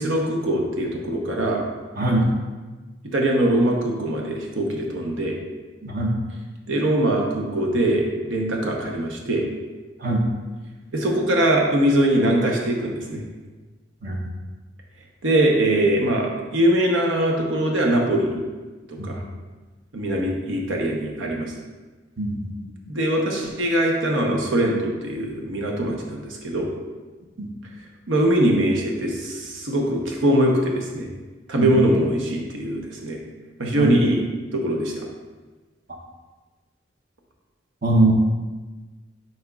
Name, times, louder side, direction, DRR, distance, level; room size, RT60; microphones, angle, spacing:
voice 1, 0.0-1.6 3.1-5.4 6.7-9.4 10.9-13.2 15.2-18.4 18.9-19.2 19.9-21.5 22.9-26.7 28.1-31.1 31.5-33.2 33.6-34.2 34.5-35.0, right 1 dB, 85° right, 0 dB, 0.9 m, -22 dB
voice 2, 2.0-2.3 5.8-6.2 10.0-10.3 14.0-14.2 19.0-19.1 22.2-22.7 27.4-27.5 31.6-31.8 33.8-33.9 37.8-38.1, right 2 dB, 50° right, -1 dB, 0.8 m, -22 dB
10.5 x 4.3 x 2.4 m, 1.3 s
head